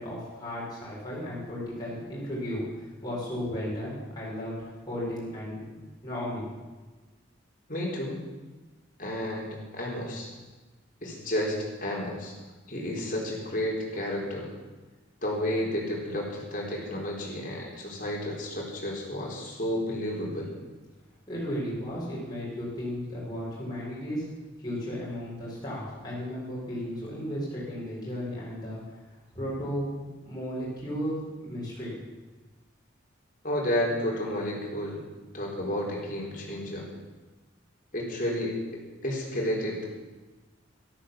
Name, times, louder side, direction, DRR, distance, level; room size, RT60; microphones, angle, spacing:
voice 1, 0.0-6.5 21.3-24.3 24.6-28.8 29.1-30.0 30.2-32.0, equal, 20° left, -8 dB, 6.0 m, -35 dB
voice 2, 7.7-8.2 9.0-10.3 11.0-12.3 12.7-14.5 15.2-20.5 33.4-35.0 35.3-36.9 37.9-38.6 39.0-39.9, left 1 dB, 40° left, -2 dB, 4.0 m, -31 dB
13.5 x 13.0 x 7.5 m, 1.3 s
head